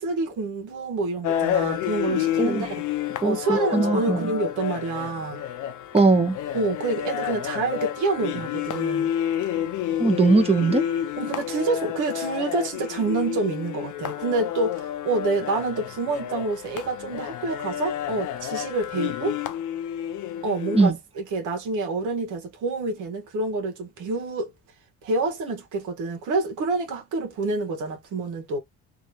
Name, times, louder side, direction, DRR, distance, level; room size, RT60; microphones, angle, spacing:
voice 1, 0.0-2.8 3.2-5.5 6.5-9.1 11.2-19.4 20.4-24.5 25.0-28.6, right 3 dB, 80° right, 1.3 m, -27 dB
sound 1, 1.2-20.9, left 11 dB, 85° left, 0.7 m, -30 dB
voice 2, 3.2-4.3 5.9-6.4 10.0-10.8 20.7-21.0, right 3 dB, 20° right, 1.2 m, -20 dB
3.1 x 2.8 x 2.7 m
cardioid pair, 90°, 30 cm